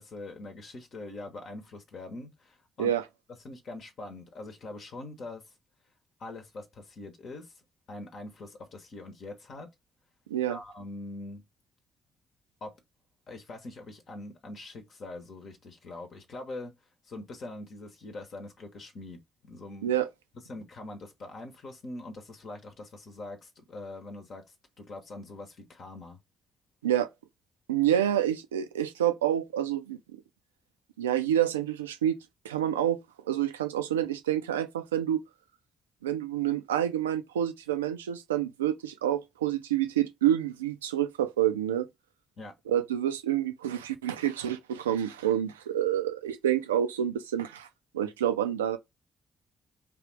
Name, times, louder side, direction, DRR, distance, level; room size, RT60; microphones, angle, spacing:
voice 1, 0.0-2.9 3.4-5.5 6.2-7.6 7.9-9.7 10.5-11.4 12.6-12.7 13.3-16.7 17.0-20.0 20.5-24.4 24.8-26.2 42.4-42.5, left 2 dB, 55° left, 0.9 m, -43 dB
voice 2, 10.3-10.6 19.8-20.1 26.8-27.1 27.7-30.2 31.0-32.2 32.4-33.0 33.3-35.2 36.0-41.9 42.7-47.7 47.9-48.8, right 11 dB, 85° right, 0.3 m, -28 dB
3.4 x 2.4 x 3.1 m
figure-of-eight pair, 45°, 0 cm